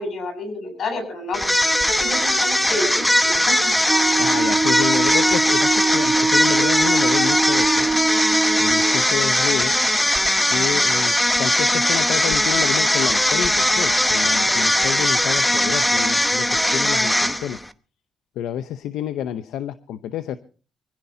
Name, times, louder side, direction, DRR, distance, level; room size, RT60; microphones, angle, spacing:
voice 1, 0.0-1.6 1.9-3.7, left 2 dB, 60° left, 7 dB, 7.1 m, -29 dB
sound 1, 1.3-17.7, left 1 dB, 5° left, 0.9 m, -19 dB
Wind instrument woodwind instrument, 3.9-9.0, right 3 dB, 25° right, 1.5 m, -22 dB
voice 2, 4.2-7.9 8.6-9.7 10.5-17.6 18.4-20.4, left 10 dB, 85° left, 11 dB, 0.8 m, -29 dB
25.0 x 16.0 x 2.8 m, 0.37 s
cardioid pair, 90°, 0 cm